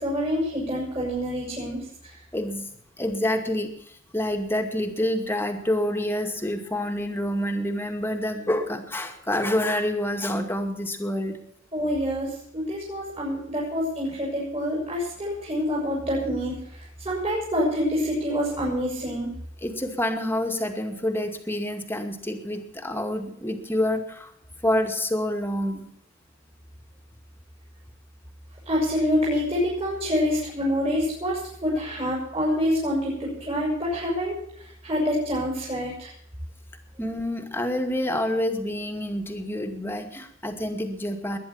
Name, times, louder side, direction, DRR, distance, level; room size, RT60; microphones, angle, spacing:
voice 1, 0.0-2.2 11.7-19.4 28.7-36.1, equal, 30° right, -5 dB, 7.2 m, -27 dB
voice 2, 2.3-2.7 3.0-11.4 19.6-24.3 24.6-25.9 37.0-41.4, left 1 dB, 10° left, 5 dB, 2.3 m, -27 dB
21.0 x 10.5 x 5.8 m, 0.69 s
head